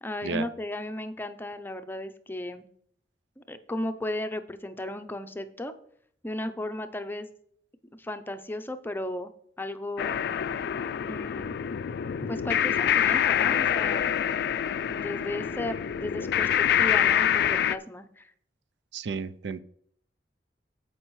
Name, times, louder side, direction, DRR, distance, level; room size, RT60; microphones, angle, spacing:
voice 1, 0.0-2.6 3.4-5.7 6.2-7.3 8.0-9.3 9.6-10.2 11.1-11.5 12.3-14.1 14.9-16.5 16.8-18.3, left 1 dB, 10° left, 9 dB, 0.6 m, -35 dB
sound 1, 10.0-17.8, left 9 dB, 65° left, 0.3 m, -26 dB
voice 2, 18.9-19.6, right 5 dB, 75° right, 15 dB, 0.4 m, -32 dB
15.0 x 5.3 x 3.1 m, 0.64 s
head